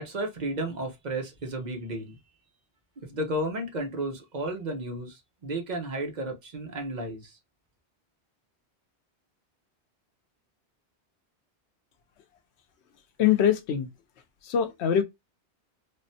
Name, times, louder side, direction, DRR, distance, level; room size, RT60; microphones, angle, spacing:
voice 1, 0.0-2.2 3.0-7.4, right 1 dB, 45° right, 0.9 m, -33 dB
voice 2, 13.2-13.9 14.5-15.0, left 9 dB, 90° left, 0.9 m, -23 dB
3.5 x 2.1 x 2.7 m
omnidirectional pair, 1.1 m